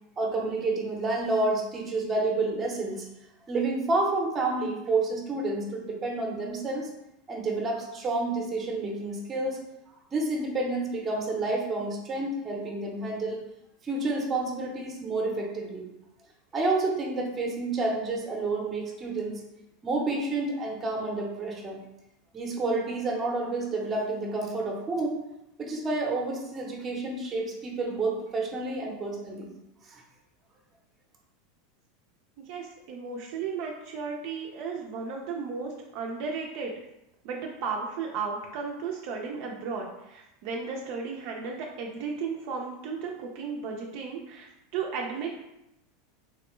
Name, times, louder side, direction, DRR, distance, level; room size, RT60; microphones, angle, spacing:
voice 1, 0.2-3.0 3.5-6.9 7.3-9.6 10.1-13.4 13.8-15.9 16.5-19.4 19.8-21.8 22.3-25.2 25.6-29.5 29.8-30.0, right 2 dB, 20° right, 0 dB, 0.7 m, -29 dB
voice 2, 32.4-36.7 37.2-45.4, right 5 dB, 55° right, 0 dB, 0.4 m, -34 dB
3.5 x 2.1 x 3.1 m, 0.88 s
supercardioid pair, 135°, 0 cm